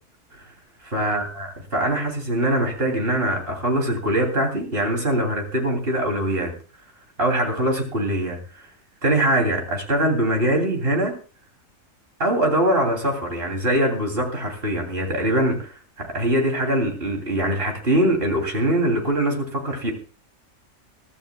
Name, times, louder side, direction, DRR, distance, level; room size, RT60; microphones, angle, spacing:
voice 1, 0.8-6.5 7.2-8.6 9.0-11.1 12.2-19.9, right 1 dB, 45° right, 2 dB, 3.5 m, -23 dB
23.5 x 12.5 x 2.3 m, 0.36 s
omnidirectional pair, 1.4 m